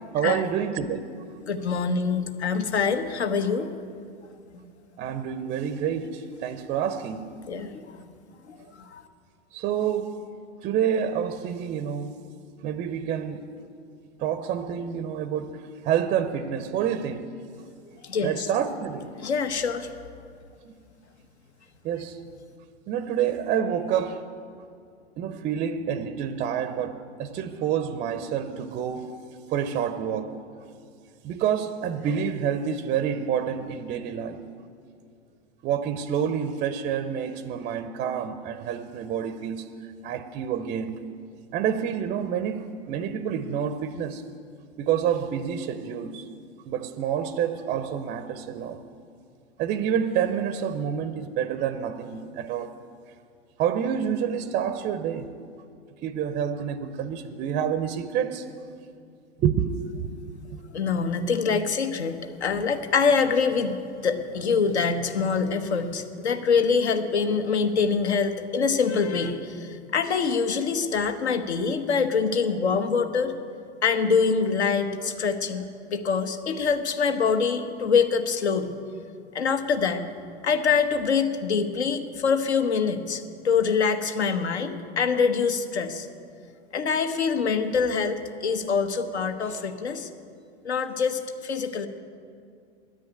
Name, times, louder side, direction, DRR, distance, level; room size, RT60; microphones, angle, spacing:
voice 1, 0.1-1.0 5.0-7.2 9.5-10.2 10.6-12.2 12.6-13.5 14.2-15.5 15.8-17.3 18.2-19.1 20.6-20.7 21.8-22.2 22.9-24.2 25.2-29.1 29.5-30.4 31.2-34.4 35.6-39.7 40.0-41.0 41.5-44.2 44.8-46.3 46.7-48.8 49.6-52.8 53.6-55.3 56.0-58.5 59.4-60.0, right 8 dB, 20° right, 0.5 m, -28 dB
voice 2, 1.4-3.7 4.5-4.6 7.5-7.8 8.5-9.0 18.0-18.5 19.2-19.9 60.7-63.8 64.0-73.3 73.8-78.7 79.3-80.0 80.4-86.1 86.7-90.1 90.6-91.9, left 5 dB, 70° left, 1.1 m, -25 dB
10.0 x 9.6 x 9.5 m
figure-of-eight pair, 95°, 34 cm